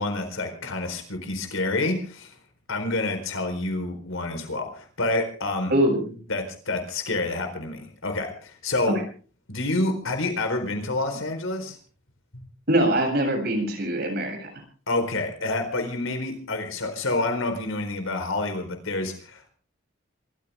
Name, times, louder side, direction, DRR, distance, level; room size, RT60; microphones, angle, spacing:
voice 1, 0.0-2.3 2.7-5.7 6.3-9.0 9.5-11.8 12.3-12.4 14.9-19.5, left 2 dB, 80° left, 6 dB, 4.3 m, -28 dB
voice 2, 5.7-6.1 12.7-14.5, right 1 dB, 50° right, 2 dB, 7.8 m, -23 dB
27.0 x 14.5 x 3.6 m, 0.40 s
head